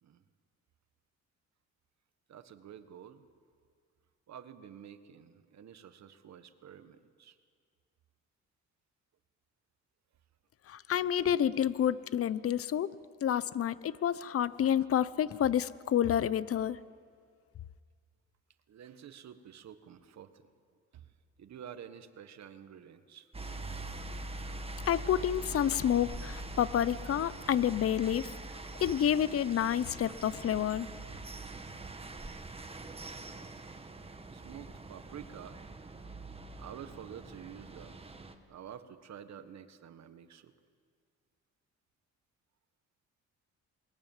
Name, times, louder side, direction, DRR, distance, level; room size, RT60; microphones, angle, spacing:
voice 1, 2.3-3.2 4.3-7.4 18.7-20.5 20.9-21.1 21.4-23.3 34.3-35.6 36.6-38.1 38.5-40.5, right 9 dB, 65° right, 10 dB, 1.6 m, -49 dB
voice 2, 10.7-12.9 13.2-16.8 24.9-28.3 28.8-30.9, left 10 dB, 50° left, 17 dB, 0.8 m, -29 dB
sound 1, 23.3-38.3, right 2 dB, 20° right, 1.7 m, -44 dB
27.5 x 21.5 x 7.4 m, 2.1 s
cardioid pair, 90°, 30 cm